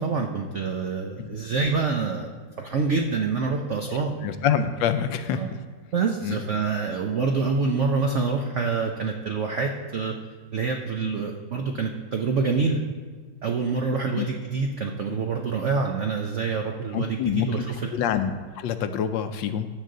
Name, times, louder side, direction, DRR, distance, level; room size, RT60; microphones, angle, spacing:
voice 1, 0.0-4.1 5.3-5.5 5.9-10.1 10.5-12.8 13.4-17.9, right 4 dB, 70° right, 2 dB, 0.6 m, -26 dB
voice 2, 3.9-5.6 6.2-6.4 14.1-14.3 16.9-17.5 17.9-19.7, left 8 dB, 80° left, 10 dB, 1.3 m, -26 dB
14.5 x 6.6 x 3.8 m, 1.5 s
omnidirectional pair, 2.1 m